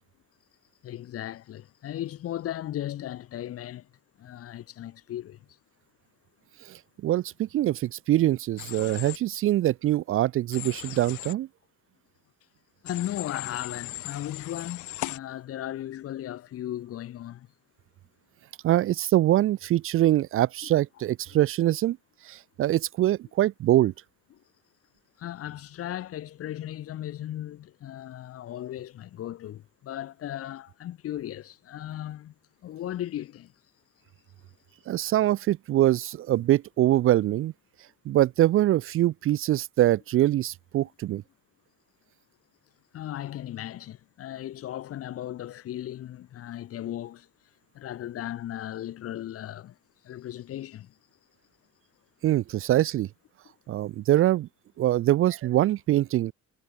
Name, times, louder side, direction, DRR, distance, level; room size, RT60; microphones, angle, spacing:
voice 1, 0.8-3.9 4.2-5.4 12.8-17.5 24.3-24.4 25.2-32.3 32.6-33.5 36.4-36.5 42.9-47.3 47.7-49.7 50.0-50.9, left 12 dB, 50° left, 0.9 m, -36 dB
voice 2, 6.7-11.5 18.6-22.0 22.2-23.9 34.9-37.5 38.1-41.2 52.2-53.1 53.7-54.5 54.8-56.3, right 14 dB, 45° right, 0.4 m, -24 dB
Human voice / Train, 8.6-9.2 10.5-11.3 12.9-15.2, left 18 dB, 80° left, 2.3 m, -38 dB
cardioid pair, 130°, 30 cm